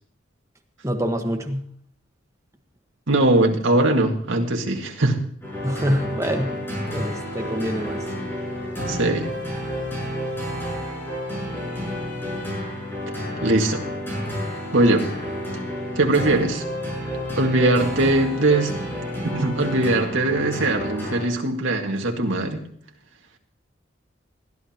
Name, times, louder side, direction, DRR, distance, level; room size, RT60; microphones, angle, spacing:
voice 1, 0.8-1.6 5.6-6.5 6.9-8.0, equal, 15° right, 4 dB, 1.4 m, -25 dB
voice 2, 3.1-5.2 8.9-9.3 13.4-13.9 14.7-15.1 16.0-16.6 17.4-18.8 19.2-22.6, right 2 dB, 80° right, 2 dB, 2.0 m, -21 dB
sound 1, 5.4-21.2, equal, 10° left, 7.1 m, -30 dB
21.0 x 13.5 x 3.0 m, 0.62 s
head